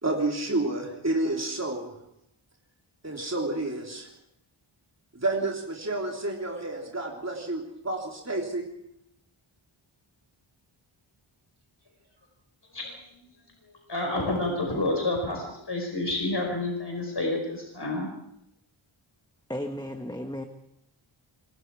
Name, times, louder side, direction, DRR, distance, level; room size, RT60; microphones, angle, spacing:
voice 1, 0.0-1.9 3.0-4.1 5.2-8.7, right 2 dB, 30° right, -1 dB, 3.4 m, -30 dB
voice 2, 12.7-18.1, left 2 dB, 55° left, 1 dB, 5.2 m, -30 dB
voice 3, 19.5-20.4, left 1 dB, 10° left, 6 dB, 1.4 m, -34 dB
26.0 x 23.5 x 4.7 m, 0.78 s
wide cardioid pair, 60°, 49 cm